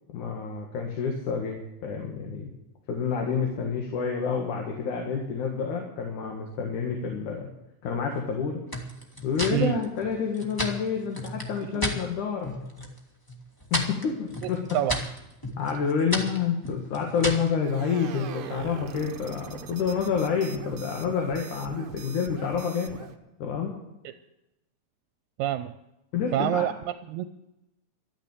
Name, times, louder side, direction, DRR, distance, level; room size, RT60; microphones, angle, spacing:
voice 1, 0.1-2.5 2.9-7.5 7.8-8.6 9.2-12.5 13.7-14.7 15.6-23.1 23.4-23.8 26.1-26.7, left 6 dB, 90° left, 1 dB, 3.2 m, -28 dB
sound 1, 8.7-12.0 12.4-13.0 13.3-17.5, equal, 10° left, 1.1 m, -33 dB
voice 2, 14.4-15.0 25.4-25.7 26.3-26.7 27.1-27.3, right 13 dB, 80° right, 10 dB, 2.0 m, -26 dB
sound 2, 17.6-23.2, right 9 dB, 65° right, 1.5 m, -41 dB
13.0 x 9.7 x 8.8 m, 0.92 s
omnidirectional pair, 3.4 m